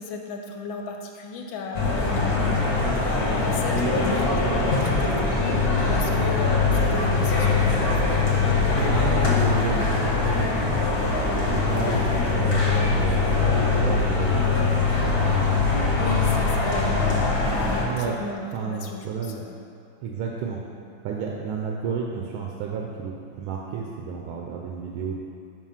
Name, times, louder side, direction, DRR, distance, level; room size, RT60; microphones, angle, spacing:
voice 1, 0.0-2.6 3.4-8.2 11.8-12.0 16.0-19.5, left 4 dB, 75° left, 2 dB, 1.3 m, -35 dB
sound 1, 1.7-17.8, left 3 dB, 35° left, 1.1 m, -22 dB
voice 2, 8.8-13.3 13.8-16.0 17.8-18.2 18.5-19.4 20.0-20.6 21.0-25.2, right 5 dB, 80° right, -1 dB, 1.4 m, -32 dB
5.4 x 4.9 x 5.6 m, 2.5 s
omnidirectional pair, 2.2 m